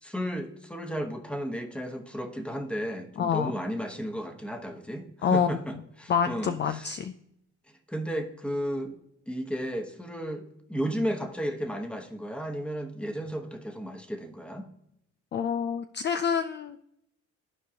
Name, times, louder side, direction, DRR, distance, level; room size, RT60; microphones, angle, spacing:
voice 1, 0.0-6.9 7.9-9.0 9.3-14.7, equal, 5° left, 5 dB, 1.0 m, -34 dB
voice 2, 3.2-3.5 5.2-5.6 6.1-7.1 15.3-16.8, left 7 dB, 35° left, 10 dB, 0.4 m, -27 dB
13.5 x 4.5 x 2.8 m, 0.76 s
cardioid pair, 90°, 30 cm